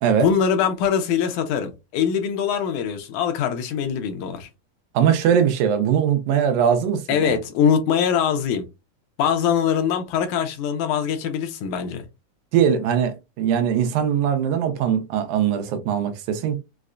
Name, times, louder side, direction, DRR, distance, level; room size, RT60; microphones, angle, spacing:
voice 1, 0.2-4.5 7.1-8.7 9.2-12.0, left 7 dB, 85° left, 2.2 m, -22 dB
voice 2, 4.9-7.4 12.5-16.6, right 8 dB, 85° right, 2.1 m, -21 dB
5.7 x 2.1 x 2.4 m
omnidirectional pair, 3.4 m